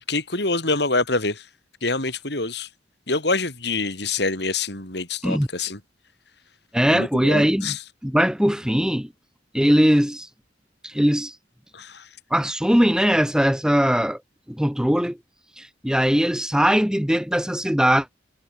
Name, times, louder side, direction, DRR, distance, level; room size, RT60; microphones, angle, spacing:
voice 1, 0.1-1.4 1.8-2.7 3.1-5.8 6.9-7.8 11.7-12.0, left 3 dB, 60° left, 6.0 m, -25 dB
voice 2, 6.7-7.8 8.0-9.1 9.5-10.3 10.8-11.4 12.3-14.2 14.5-15.2 15.6-18.1, equal, 5° right, 1.4 m, -20 dB
head